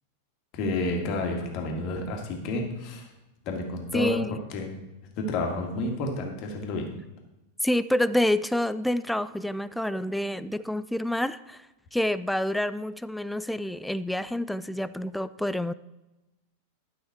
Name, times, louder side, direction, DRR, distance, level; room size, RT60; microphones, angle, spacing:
voice 1, 0.5-3.1 3.5-4.2 4.5-4.8 5.2-6.9, left 2 dB, 40° left, 2 dB, 1.9 m, -30 dB
voice 2, 3.9-4.4 7.6-11.7 11.9-15.7, left 1 dB, ahead, 15 dB, 0.3 m, -28 dB
11.5 x 5.7 x 4.7 m, 0.99 s
figure-of-eight pair, 90°, 0 cm